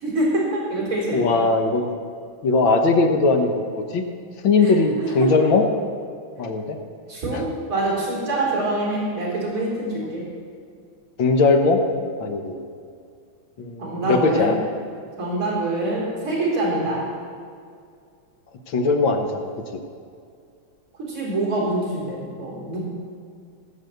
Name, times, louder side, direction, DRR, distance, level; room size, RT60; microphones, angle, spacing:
voice 1, 0.0-1.5 4.6-4.8 5.0-5.3 7.1-10.2 13.8-14.5 15.2-17.0 21.1-22.8, right 2 dB, 35° right, -4 dB, 4.3 m, -25 dB
voice 2, 1.1-1.9 2.4-3.6 3.9-4.0 4.4-5.7 6.4-6.8 7.3-7.4 11.2-11.8 12.2-12.6 13.6-14.5 18.7-19.8, left 3 dB, 65° left, 5 dB, 1.8 m, -19 dB
18.5 x 6.2 x 7.8 m, 2.3 s
omnidirectional pair, 2.4 m